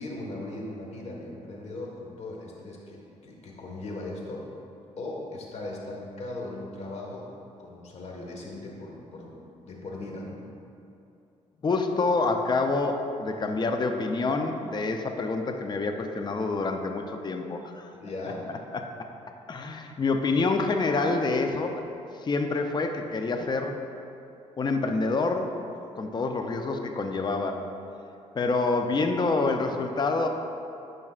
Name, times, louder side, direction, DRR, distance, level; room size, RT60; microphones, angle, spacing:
voice 1, 0.0-4.5 5.0-7.3 7.6-10.4 17.9-18.4, left 2 dB, 55° left, -2 dB, 1.5 m, -38 dB
voice 2, 11.6-17.9 18.7-18.9 19.5-21.8 22.2-23.8 24.6-25.6 25.9-27.6 28.3-30.3, left 3 dB, 35° left, 4 dB, 0.6 m, -27 dB
11.0 x 5.4 x 2.4 m, 2.7 s
cardioid pair, 80°, 13 cm